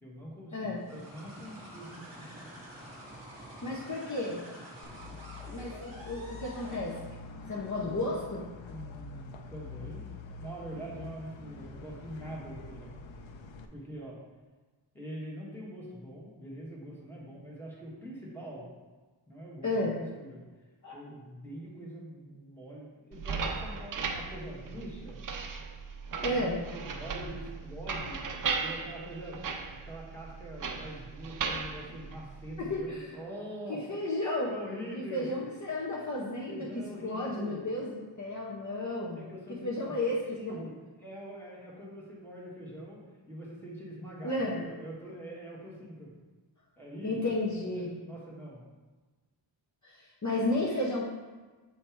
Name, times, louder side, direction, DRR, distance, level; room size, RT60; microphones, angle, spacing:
voice 1, 0.0-2.4 8.7-10.0 10.4-13.0 13.7-14.2 14.9-18.7 19.3-19.7 20.2-20.4 20.9-25.2 26.1-26.5 26.7-29.4 29.8-33.8 34.5-35.4 36.5-37.7 39.1-39.9 40.4-46.1 46.8-47.2 47.7-48.6, equal, 5° left, -5 dB, 1.3 m, -44 dB
voice 2, 0.5-0.8 3.6-4.5 5.5-7.0 7.5-8.5 19.6-20.0 20.8-20.9 26.2-26.6 32.6-33.1 33.7-34.5 34.9-39.3 39.6-40.6 44.2-44.6 47.0-48.0 49.8-51.0, left 2 dB, 40° left, -4 dB, 0.7 m, -33 dB
sound 1, 0.7-7.3, right 1 dB, 15° right, 2.0 m, -48 dB
sound 2, 4.8-13.7, left 3 dB, 70° left, 0.6 m, -46 dB
sound 3, 23.1-32.8, right 5 dB, 45° right, 0.5 m, -37 dB
7.1 x 3.3 x 4.5 m, 1.3 s
wide cardioid pair, 165°, 47 cm